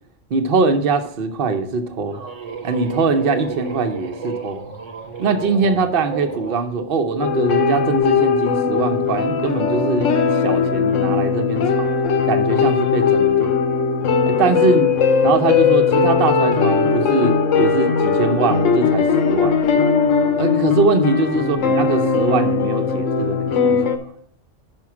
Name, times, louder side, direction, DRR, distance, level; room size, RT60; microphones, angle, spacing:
voice 1, 0.3-2.2 2.6-4.6 5.2-10.1 10.4-11.9 12.2-13.6 14.3-15.0 15.2-19.6 20.4-23.8, right 4 dB, 50° right, 8 dB, 0.9 m, -22 dB
sound 1, 1.7-6.6, right 5 dB, 75° right, 1.3 m, -32 dB
sound 2, 7.2-24.0, left 5 dB, 80° left, 1.1 m, -18 dB
6.0 x 5.6 x 5.9 m, 0.66 s
omnidirectional pair, 1.3 m